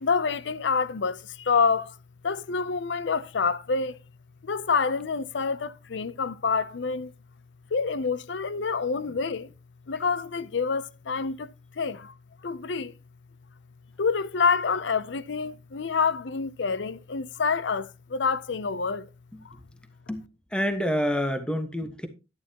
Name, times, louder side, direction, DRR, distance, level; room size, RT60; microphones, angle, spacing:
voice 1, 0.0-2.0 2.2-4.0 4.4-7.1 7.7-9.5 9.9-11.5 11.8-12.1 12.4-12.9 14.0-19.1 19.4-19.6, left 5 dB, 85° left, 0.6 m, -27 dB
voice 2, 20.1-22.1, equal, 5° left, 1.3 m, -28 dB
11.5 x 11.0 x 2.9 m
head